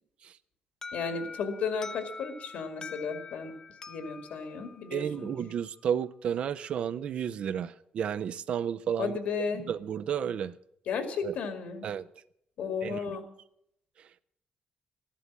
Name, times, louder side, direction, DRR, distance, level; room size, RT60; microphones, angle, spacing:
Alarm, 0.8-5.6, left 4 dB, 25° left, 0.6 m, -45 dB
voice 1, 0.9-3.5 3.9-5.3 9.0-9.6 10.9-11.9 12.6-13.2, left 5 dB, 75° left, 8 dB, 2.2 m, -34 dB
voice 2, 4.9-9.2 9.5-10.5 11.2-11.3 11.8-12.1 12.8-13.2, right 8 dB, 55° right, 14 dB, 0.5 m, -32 dB
14.0 x 11.5 x 7.3 m, 0.73 s
wide cardioid pair, 175°, 2 cm